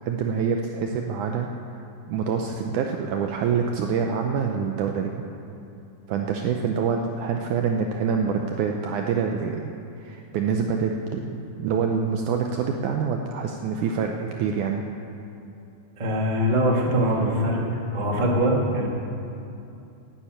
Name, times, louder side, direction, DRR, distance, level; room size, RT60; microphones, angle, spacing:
voice 1, 0.0-1.5 2.1-5.1 6.1-9.7 10.0-14.8, right 6 dB, 80° right, 3 dB, 1.8 m, -26 dB
voice 2, 16.0-17.6 17.9-18.9, equal, 50° right, -1 dB, 0.5 m, -22 dB
11.5 x 9.9 x 8.9 m, 2.7 s
omnidirectional pair, 4.3 m